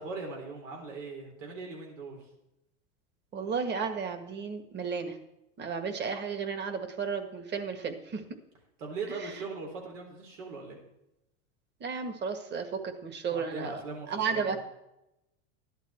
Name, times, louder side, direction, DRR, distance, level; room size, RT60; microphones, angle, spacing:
voice 1, 0.0-2.2 8.8-10.8 13.3-14.4, right 4 dB, 85° right, 1 dB, 4.5 m, -39 dB
voice 2, 3.3-5.2 5.6-8.2 9.1-9.3 11.8-13.8 14.1-14.6, right 5 dB, 30° right, 8 dB, 1.8 m, -33 dB
13.5 x 11.5 x 4.5 m, 0.86 s
supercardioid pair, 120°, 36 cm